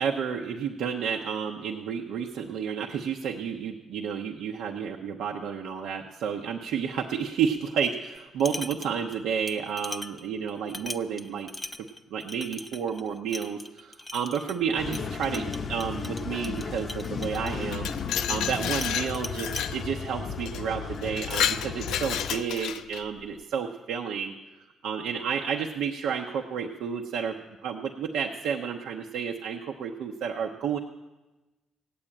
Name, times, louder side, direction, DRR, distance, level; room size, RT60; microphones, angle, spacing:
voice 1, 0.0-11.5 12.1-24.3 24.8-30.8, right 7 dB, 85° right, 0 dB, 0.9 m, -31 dB
sound 1, 8.1-9.2 9.5-18.5 18.8-19.7, left 1 dB, 15° left, 0.7 m, -41 dB
sound 2, 14.8-22.4, left 5 dB, 50° left, 0.7 m, -35 dB
Glass, 17.5-19.8 20.5-20.6 21.0-23.0, left 9 dB, 85° left, 0.5 m, -30 dB
16.0 x 8.7 x 8.9 m, 1.1 s
cardioid pair, 90°, 0 cm